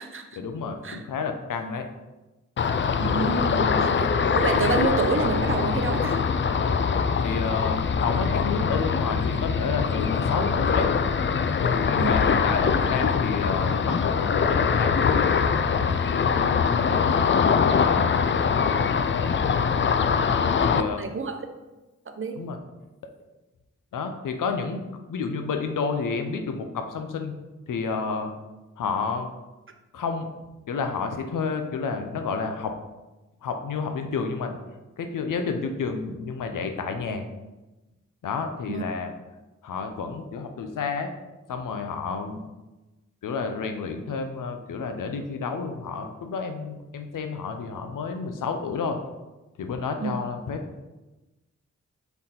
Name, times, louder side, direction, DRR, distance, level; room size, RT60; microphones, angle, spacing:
voice 1, 0.3-1.9 7.2-10.9 11.5-17.3 17.7-19.3 20.2-21.0 22.3-22.6 23.9-27.3 27.7-28.3 28.8-29.3 29.9-30.3 30.7-32.7 33.4-34.6 35.0-37.2 38.2-39.1 39.6-41.1 41.5-42.4 43.2-49.0 49.6-50.8, left 5 dB, 85° left, 6 dB, 0.7 m, -30 dB
Ocean, 2.6-20.8, left 6 dB, 40° left, 0.4 m, -23 dB
voice 2, 3.0-6.2 12.0-12.2 20.6-21.4 22.1-22.4 38.7-38.8 50.0-50.2, right 4 dB, 40° right, 6 dB, 0.8 m, -28 dB
5.8 x 3.9 x 4.3 m, 1.1 s
cardioid pair, 50°, 31 cm